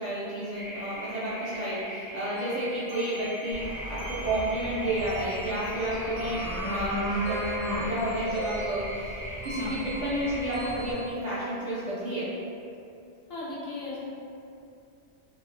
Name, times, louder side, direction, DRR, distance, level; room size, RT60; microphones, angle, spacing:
voice 1, 0.0-9.1 9.4-12.3, right 1 dB, 50° right, -10 dB, 0.5 m, -31 dB
sound 1, 0.5-10.6, equal, 85° left, 1.1 m, -40 dB
sound 2, 2.3-11.1, right 2 dB, 80° right, 0.9 m, -42 dB
sound 3, 3.5-10.9, equal, 25° left, 0.4 m, -36 dB
voice 2, 13.3-14.0, left 3 dB, 65° left, -6 dB, 0.8 m, -36 dB
2.9 x 2.4 x 2.4 m, 2.5 s
omnidirectional pair, 1.2 m